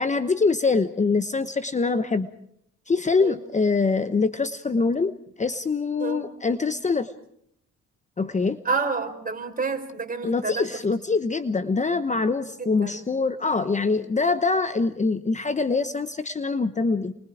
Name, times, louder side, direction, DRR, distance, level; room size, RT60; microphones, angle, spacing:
voice 1, 0.0-2.3 2.9-7.1 8.2-8.6 10.2-17.2, left 4 dB, 25° left, 11 dB, 1.0 m, -24 dB
voice 2, 8.6-10.7 12.6-13.0, right 4 dB, 30° right, 5 dB, 4.5 m, -29 dB
29.5 x 23.5 x 4.9 m, 0.70 s
cardioid pair, 90°, 30 cm